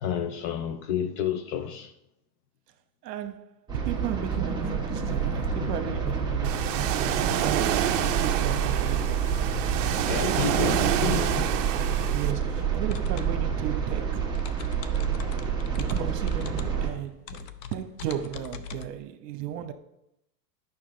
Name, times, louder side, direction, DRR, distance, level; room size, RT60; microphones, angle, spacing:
voice 1, 0.0-1.9 10.1-11.5, left 8 dB, 35° left, 0.4 m, -30 dB
voice 2, 3.0-11.2 12.1-14.4 15.8-19.7, right 10 dB, 70° right, 1.0 m, -35 dB
sound 1, 3.7-16.9, right 6 dB, 10° right, 1.2 m, -28 dB
Ocean, 6.4-12.3, right 11 dB, 50° right, 0.8 m, -28 dB
sound 2, 12.8-18.9, left 8 dB, 80° left, 0.8 m, -43 dB
9.2 x 6.0 x 3.8 m
supercardioid pair, 140°, 49 cm